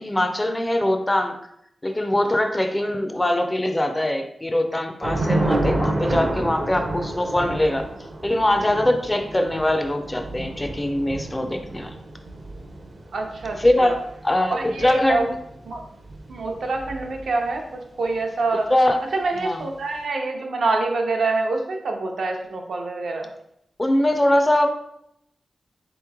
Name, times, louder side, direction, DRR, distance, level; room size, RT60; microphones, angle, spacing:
voice 1, 0.0-1.4 1.8-7.9 8.2-11.9 13.6-14.0 14.2-15.3 18.7-19.0 19.4-19.6 23.8-24.7, left 1 dB, 15° left, 5 dB, 0.4 m, -22 dB
Thunder / Rain, 5.0-17.5, right 2 dB, 40° right, 0.5 m, -30 dB
voice 2, 13.1-14.0 14.5-15.2 15.7-15.8 16.3-18.7 19.1-23.3, right 3 dB, 80° right, 2 dB, 0.7 m, -26 dB
4.0 x 3.0 x 3.5 m, 0.76 s
wide cardioid pair, 155°, 0 cm